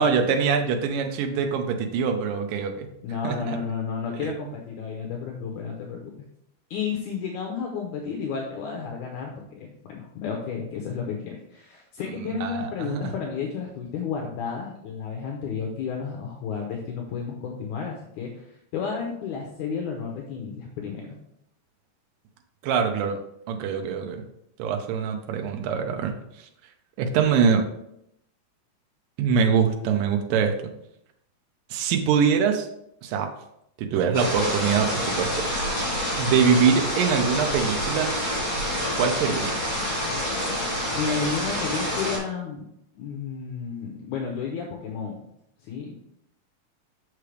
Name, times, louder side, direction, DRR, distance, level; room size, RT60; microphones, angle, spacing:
voice 1, 0.0-2.9 3.2-3.6 4.1-4.3 12.2-13.1 22.6-23.2 23.5-24.2 24.6-26.5 27.0-27.7 29.2-30.7 31.7-32.7 33.0-33.3 33.8-35.5 36.2-38.1 39.0-39.5, right 6 dB, 80° right, 4 dB, 2.4 m, -24 dB
voice 2, 3.0-6.1 6.7-21.2 40.9-42.6 43.0-45.3 45.6-46.0, left 6 dB, 75° left, 1 dB, 2.1 m, -32 dB
sound 1, 34.1-42.2, equal, 35° left, 3.4 m, -27 dB
6.3 x 5.8 x 3.3 m, 0.77 s
omnidirectional pair, 3.9 m